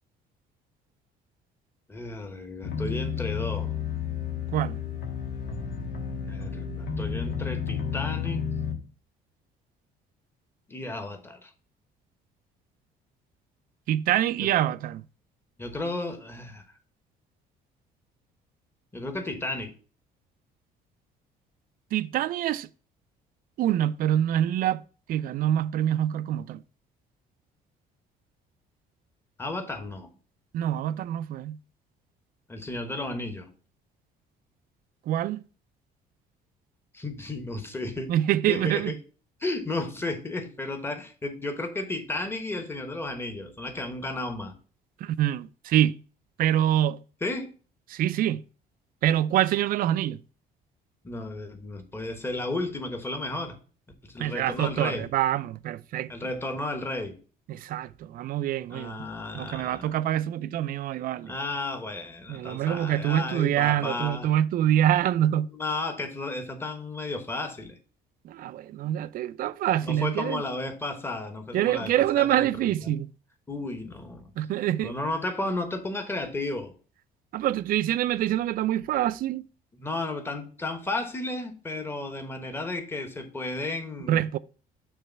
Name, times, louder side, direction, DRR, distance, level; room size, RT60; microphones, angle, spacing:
voice 1, 1.9-3.7 6.3-8.4 10.7-11.5 14.4-14.5 15.6-16.6 18.9-19.7 29.4-30.1 32.5-33.5 36.9-38.1 38.5-39.0 39.4-44.6 47.2-47.5 51.0-53.6 54.0-55.1 56.1-57.2 58.7-59.9 61.2-64.3 65.5-67.8 69.8-72.9 73.5-74.3 74.8-76.7 79.7-84.2, left 2 dB, 15° left, 1.2 m, -33 dB
sound 1, 2.6-8.8, left 7 dB, 75° left, 1.4 m, -31 dB
voice 2, 13.9-15.1 21.9-22.7 23.6-24.8 25.1-26.6 30.5-31.6 35.1-35.4 38.1-39.0 45.0-46.0 46.4-47.0 47.9-48.4 49.0-50.2 54.2-56.1 57.5-59.1 59.3-61.3 62.3-65.5 68.2-70.4 71.5-73.1 74.4-74.9 77.3-79.4 84.1-84.4, right 12 dB, 60° right, 0.4 m, -25 dB
6.7 x 3.1 x 5.7 m
cardioid pair, 110°, 17 cm